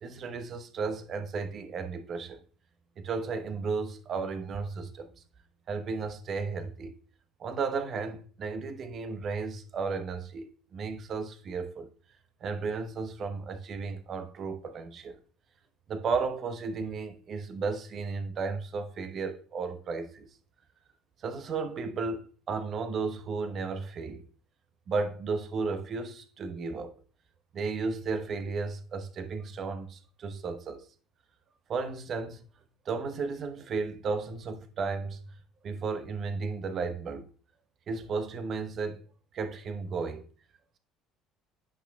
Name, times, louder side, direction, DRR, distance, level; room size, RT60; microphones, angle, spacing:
voice 1, 0.0-2.4 3.0-5.1 5.7-6.9 7.4-11.9 12.4-15.2 15.9-20.3 21.2-24.2 24.9-26.9 27.5-30.9 31.7-32.4 32.8-35.2 35.6-37.3 37.9-39.0 39.3-40.3, right 4 dB, 45° right, 1.0 m, -34 dB
10.0 x 6.1 x 2.3 m
hypercardioid pair, 60°, 0 cm